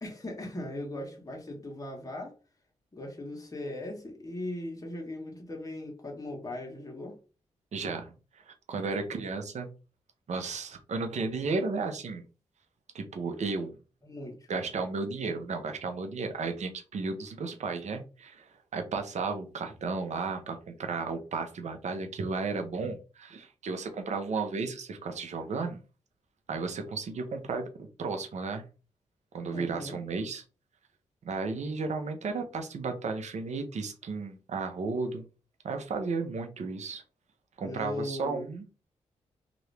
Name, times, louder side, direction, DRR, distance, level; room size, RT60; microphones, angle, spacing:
voice 1, 0.0-2.3 2.9-7.2 14.0-14.5 29.4-30.0 37.6-38.5, left 1 dB, 25° left, 0 dB, 1.3 m, -38 dB
voice 2, 7.7-9.7 10.3-12.2 12.9-13.8 14.5-25.8 26.5-28.6 29.3-30.4 31.2-35.2 35.6-37.0 37.6-38.7, right 4 dB, 65° right, 6 dB, 0.8 m, -34 dB
2.9 x 2.5 x 3.3 m, 0.33 s
supercardioid pair, 50°, 13 cm